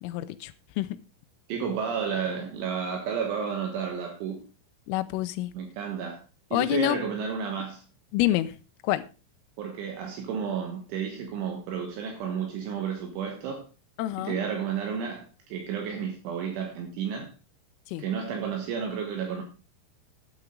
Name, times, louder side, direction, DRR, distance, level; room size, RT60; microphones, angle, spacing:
voice 1, 0.0-1.0 4.9-5.5 6.5-7.0 8.1-8.6 8.8-9.0 14.0-14.4 17.9-18.0, left 16 dB, 85° left, 3.3 m, -27 dB
voice 2, 1.5-4.5 5.6-6.2 6.5-7.8 9.6-13.7 14.2-17.3 18.0-19.4, right 7 dB, 70° right, 3.6 m, -32 dB
12.0 x 9.5 x 3.7 m
omnidirectional pair, 5.9 m